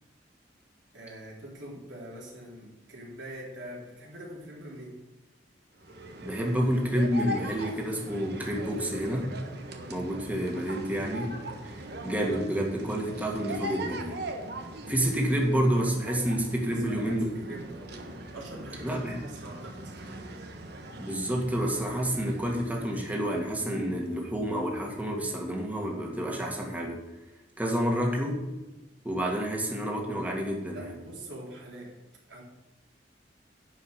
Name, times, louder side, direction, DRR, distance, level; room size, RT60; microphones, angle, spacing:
voice 1, 0.9-5.0 16.6-18.0 18.3-20.3 30.7-31.9 32.3-32.4, right 1 dB, 85° right, -3 dB, 3.7 m, -43 dB
sound 1, 5.8-24.2, right 1 dB, 60° right, 1.3 m, -41 dB
voice 2, 6.2-9.3 9.9-11.4 11.6-14.2 14.9-17.3 18.8-19.2 21.0-27.0 27.6-28.5 29.0-30.9, equal, 10° right, 0 dB, 1.9 m, -29 dB
11.0 x 5.2 x 8.2 m, 1.1 s
head